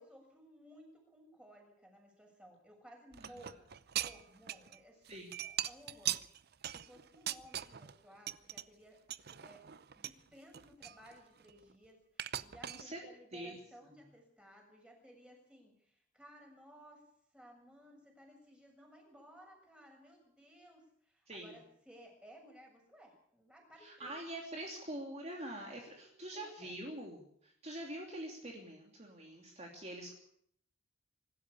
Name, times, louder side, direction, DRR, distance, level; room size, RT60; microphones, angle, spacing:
voice 1, 0.0-5.0 5.4-6.2 6.7-9.0 9.3-9.6 10.0-17.0 17.3-24.1 26.3-26.7, equal, 5° right, 1 dB, 7.1 m, -58 dB
sound 1, 3.1-4.8 5.1-8.0 8.3-8.6 9.1-10.2 10.5-11.7 12.2-12.8, right 11 dB, 55° right, 0.7 m, -40 dB
voice 2, 3.2-3.5 5.1-5.3 12.6-13.0 13.3-13.6 21.3-21.6 23.8-30.1, right 1 dB, 35° right, 0 dB, 3.0 m, -45 dB
24.5 x 13.0 x 8.5 m, 0.70 s
head